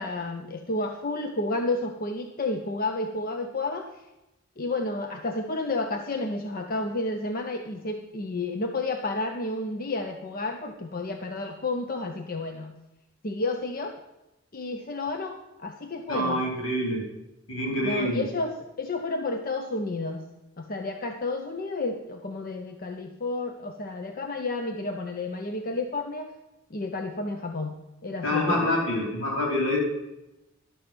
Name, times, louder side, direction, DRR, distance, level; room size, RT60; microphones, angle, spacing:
voice 1, 0.0-3.9 4.6-12.7 13.2-14.0 14.5-16.4 17.8-20.2 20.6-26.3 26.7-27.8 28.0-28.6, left 2 dB, 45° left, 4 dB, 0.7 m, -31 dB
voice 2, 16.1-17.0 17.5-18.2 28.2-29.8, left 1 dB, 80° left, -2 dB, 4.3 m, -26 dB
11.5 x 7.0 x 6.1 m, 0.93 s
head